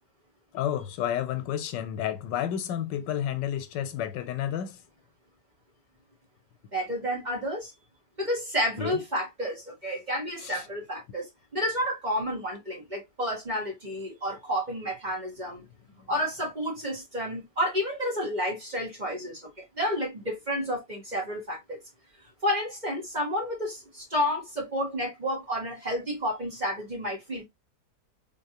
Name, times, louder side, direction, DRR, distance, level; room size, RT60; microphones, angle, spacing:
voice 1, 0.5-4.8 8.8-9.0 10.4-10.6, left 10 dB, 90° left, 1.4 m, -31 dB
voice 2, 6.7-7.7 8.2-11.3 11.5-15.6 16.1-21.8 22.4-27.4, equal, 25° right, 2.0 m, -30 dB
3.7 x 3.6 x 2.8 m
omnidirectional pair, 1.8 m